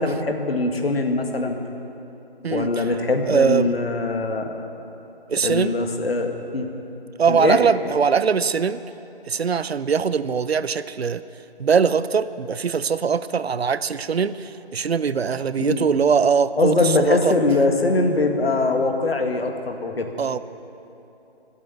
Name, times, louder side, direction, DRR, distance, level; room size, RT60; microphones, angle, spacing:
voice 1, 0.0-1.6 2.5-4.7 5.4-6.7 7.3-7.6 15.6-15.8 16.6-20.1, left 3 dB, 65° left, 4 dB, 1.9 m, -22 dB
voice 2, 2.4-2.9 3.3-3.7 5.3-5.7 7.2-8.8 9.3-11.2 11.6-17.3 20.2-20.4, right 6 dB, 70° right, 15 dB, 0.6 m, -21 dB
23.0 x 8.5 x 7.0 m, 3.0 s
figure-of-eight pair, 165°, 32 cm